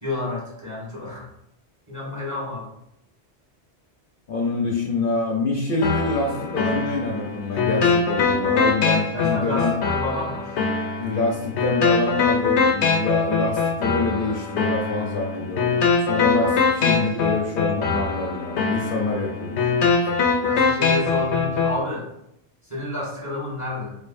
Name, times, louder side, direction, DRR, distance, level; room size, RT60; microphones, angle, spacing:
voice 1, 0.0-1.3 1.9-2.7 9.1-10.6 16.3-16.6 20.4-22.1 22.6-23.9, left 2 dB, 15° right, -6 dB, 1.5 m, -30 dB
voice 2, 4.3-9.7 11.0-19.7, left 3 dB, 60° left, -1 dB, 0.8 m, -26 dB
sound 1, 5.8-21.8, left 4 dB, 90° left, 0.9 m, -23 dB
4.5 x 2.6 x 2.5 m, 0.78 s
omnidirectional pair, 1.1 m